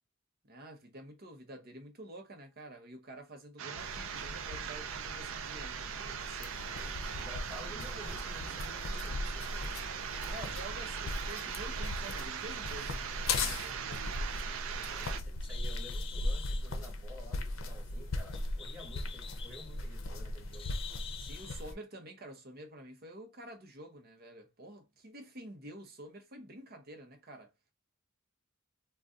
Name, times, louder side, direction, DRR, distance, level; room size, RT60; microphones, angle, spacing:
voice 1, 0.5-6.6 10.3-14.1 21.2-27.5, right 1 dB, 50° right, 0.8 m, -49 dB
sound 1, 3.6-15.2, right 8 dB, 80° right, 0.4 m, -40 dB
sound 2, 3.8-21.7, left 2 dB, 80° left, 0.6 m, -39 dB
voice 2, 6.5-9.8 14.3-20.8, equal, 5° right, 1.4 m, -52 dB
Bird, 14.6-21.7, left 8 dB, 25° left, 0.3 m, -49 dB
2.6 x 2.3 x 3.5 m
head